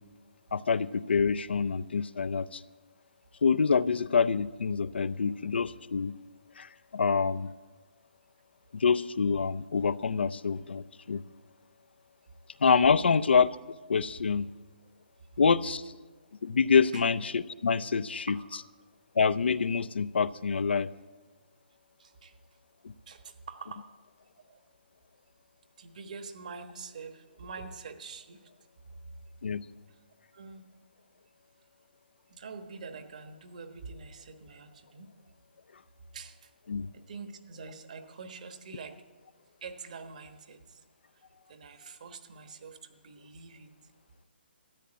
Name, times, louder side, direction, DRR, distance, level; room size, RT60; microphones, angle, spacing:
voice 1, 0.5-2.6 3.4-6.2 6.6-7.5 8.7-11.3 12.6-13.5 13.9-14.5 15.4-15.9 16.4-18.4 19.1-20.9 29.4-29.7 36.7-36.9, left 5 dB, 80° left, 15 dB, 0.6 m, -26 dB
voice 2, 22.0-22.4 23.1-23.9 24.5-24.6 25.8-28.5 29.9-30.0 30.3-30.7 32.3-35.1 36.1-36.5 36.9-39.0 39.6-40.8 41.5-43.7, right 5 dB, 45° right, 8 dB, 1.3 m, -45 dB
13.5 x 8.4 x 9.9 m, 1.3 s
hypercardioid pair, 175°, 6 cm